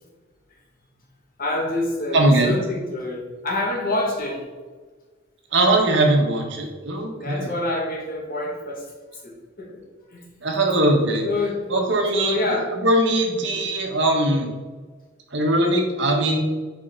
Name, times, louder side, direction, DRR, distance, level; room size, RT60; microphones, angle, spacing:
voice 1, 1.4-4.4 7.1-8.8 9.2-9.8 10.1-10.3 11.2-11.6 12.2-12.8 13.5-13.6, left 2 dB, 50° left, -3 dB, 2.3 m, -27 dB
voice 2, 2.1-2.6 5.5-7.5 10.4-11.2 11.7-12.4 12.8-14.5 15.3-16.4, right 1 dB, 65° right, 1 dB, 1.5 m, -20 dB
7.7 x 5.0 x 4.0 m, 1.4 s
head